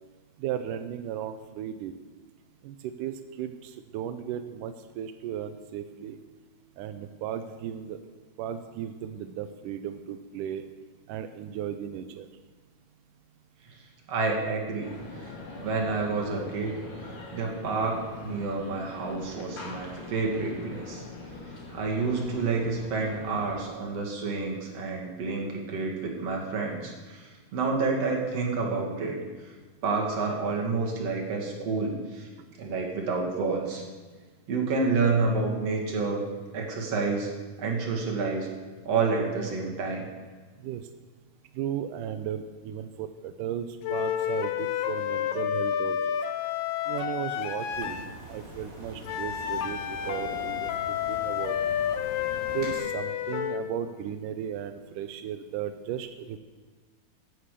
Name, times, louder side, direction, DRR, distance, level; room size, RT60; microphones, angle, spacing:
voice 1, 0.4-1.9 2.6-6.2 6.8-8.0 8.4-10.6 11.1-12.3 40.6-40.9 41.5-46.2 46.9-51.7 52.5-56.4, right 9 dB, 85° right, 9 dB, 1.9 m, -35 dB
voice 2, 14.1-14.9 15.2-15.3 15.6-16.8 17.3-21.0 21.7-29.2 29.8-32.3 32.6-33.8 34.5-36.3 36.5-37.3 37.6-38.5 38.8-40.0, right 4 dB, 45° right, -1 dB, 3.1 m, -29 dB
sound 1, 14.8-23.6, left 2 dB, 40° left, 2.6 m, -43 dB
sound 2, 43.8-48.1 49.0-53.7, left 9 dB, 75° left, 2.2 m, -30 dB
sound 3, 47.7-52.8, right 1 dB, 25° right, 4.7 m, -43 dB
15.0 x 9.5 x 6.7 m, 1.4 s
omnidirectional pair, 4.5 m